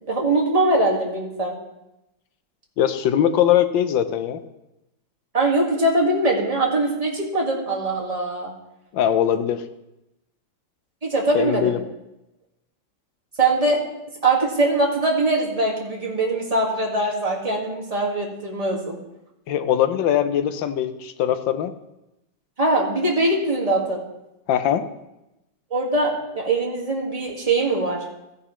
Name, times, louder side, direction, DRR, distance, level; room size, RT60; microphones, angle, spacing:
voice 1, 0.0-1.6 5.3-8.5 11.0-11.8 13.4-13.8 14.2-19.0 22.6-24.0 25.7-28.0, right 2 dB, 20° right, -2 dB, 1.9 m, -22 dB
voice 2, 2.8-4.4 8.9-9.6 11.3-11.8 19.5-21.7 24.5-24.9, left 10 dB, 80° left, 10 dB, 1.4 m, -21 dB
14.5 x 9.9 x 3.1 m, 0.91 s
omnidirectional pair, 2.1 m